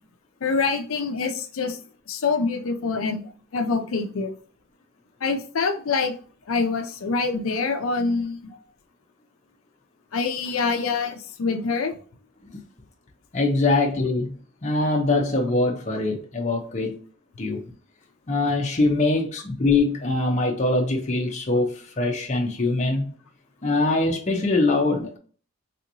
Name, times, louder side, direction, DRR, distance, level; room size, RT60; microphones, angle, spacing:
voice 1, 0.4-1.8 2.1-3.2 3.5-4.3 5.2-6.1 6.5-8.4 10.1-11.9, left 4 dB, 80° left, 0.5 m, -25 dB
voice 2, 13.3-14.4 14.6-17.0 17.4-17.6 18.3-23.1 23.6-25.2, left 2 dB, 35° left, 0.6 m, -23 dB
3.4 x 2.8 x 2.6 m
head